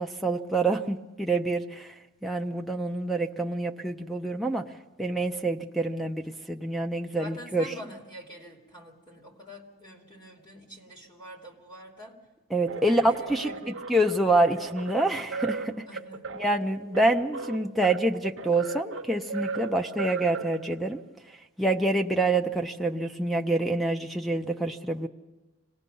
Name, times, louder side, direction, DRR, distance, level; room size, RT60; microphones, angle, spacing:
voice 1, 0.0-2.0 2.2-4.6 5.0-7.7 12.5-15.9 16.4-21.0 21.6-25.1, right 2 dB, ahead, 6 dB, 0.7 m, -27 dB
voice 2, 7.1-12.2 12.9-14.0 15.8-16.2, equal, 20° left, -1 dB, 3.1 m, -46 dB
sound 1, 12.7-20.9, right 4 dB, 60° right, 0.9 m, -37 dB
26.0 x 19.0 x 5.5 m, 1.1 s
head